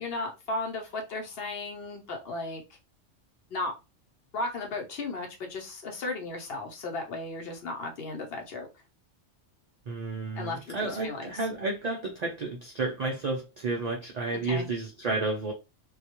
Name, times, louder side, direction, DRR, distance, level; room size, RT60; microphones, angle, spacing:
voice 1, 0.0-2.6 3.5-3.7 4.3-8.7 10.4-11.5 14.4-14.7, left 2 dB, 60° left, 0.7 m, -35 dB
voice 2, 9.9-15.5, right 3 dB, 70° right, 0.3 m, -31 dB
2.3 x 2.1 x 2.8 m
omnidirectional pair, 1.3 m